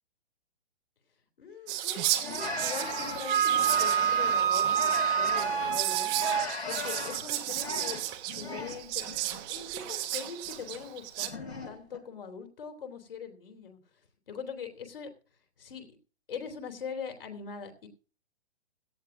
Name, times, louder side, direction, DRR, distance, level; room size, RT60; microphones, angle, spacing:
voice 1, 1.4-6.2 6.7-9.0 9.5-13.8 14.3-15.1 15.6-15.9 16.3-17.9, left 6 dB, 55° left, 5 dB, 3.2 m, -42 dB
Whispering, 1.7-11.3, right 14 dB, 25° right, 1.2 m, -34 dB
sound 1, 2.2-5.9 6.1-8.8 9.1-9.4 10.5-10.8 11.2-12.0, left 4 dB, 75° left, 3.5 m, -38 dB
Wind instrument woodwind instrument, 2.4-6.5, right 8 dB, 50° right, 0.8 m, -28 dB
17.0 x 14.0 x 2.6 m, 0.40 s
figure-of-eight pair, 125°, 32 cm